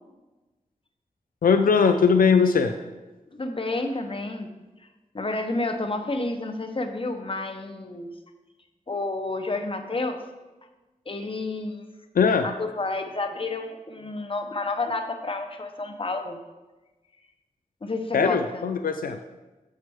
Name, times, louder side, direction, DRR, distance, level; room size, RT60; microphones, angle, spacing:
voice 1, 1.4-2.7 12.2-12.5 18.1-19.2, left 5 dB, 85° left, 7 dB, 0.4 m, -20 dB
voice 2, 3.3-4.5 5.1-8.1 8.9-10.2 11.1-11.8 12.4-16.4 17.8-18.7, left 2 dB, 40° left, 6 dB, 0.8 m, -30 dB
7.2 x 6.4 x 3.5 m, 1.1 s
wide cardioid pair, 70°, 14 cm